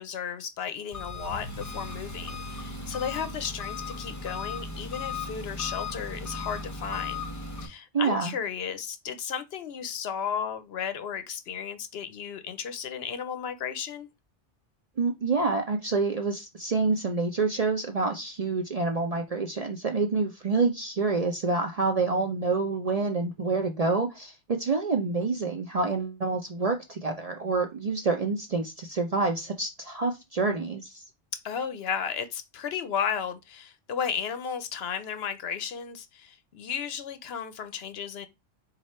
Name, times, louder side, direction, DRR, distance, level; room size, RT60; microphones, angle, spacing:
voice 1, 0.0-7.2 7.6-14.1 31.3-38.3, left 7 dB, 65° left, 0.8 m, -34 dB
Engine, 0.9-7.7, left 3 dB, 20° left, 0.7 m, -36 dB
voice 2, 7.9-8.3 15.0-31.0, right 4 dB, 45° right, 0.5 m, -27 dB
4.8 x 2.4 x 4.2 m
omnidirectional pair, 1.2 m